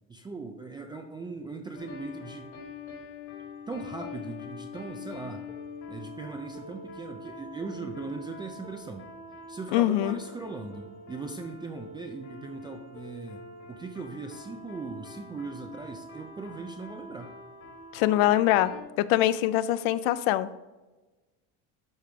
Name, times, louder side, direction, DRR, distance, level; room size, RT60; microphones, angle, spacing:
voice 1, 0.1-2.5 3.7-5.4 5.9-9.1 9.5-17.3, right 3 dB, 15° right, 4 dB, 0.3 m, -39 dB
sound 1, 1.7-18.8, left 3 dB, 45° left, 2.0 m, -44 dB
voice 2, 9.7-10.2 17.9-20.5, left 14 dB, 85° left, 15 dB, 0.5 m, -24 dB
12.0 x 5.0 x 3.4 m, 1.2 s
cardioid pair, 145°, 39 cm